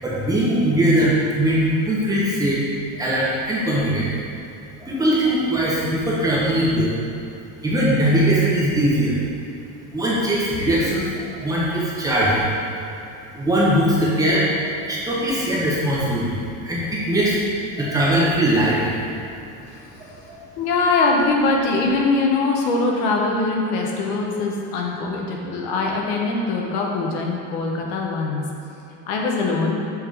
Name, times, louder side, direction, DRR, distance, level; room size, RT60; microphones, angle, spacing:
voice 1, 0.0-2.6 3.0-4.1 4.8-6.9 7.6-9.2 9.9-12.4 13.3-17.4 17.8-18.9 20.0-20.4, right 1 dB, 10° right, -7 dB, 1.0 m, -20 dB
voice 2, 19.7-20.2 20.6-28.4 29.1-29.8, left 3 dB, 70° left, -1 dB, 1.0 m, -22 dB
7.4 x 3.7 x 3.5 m, 2.7 s
cardioid pair, 150°, 36 cm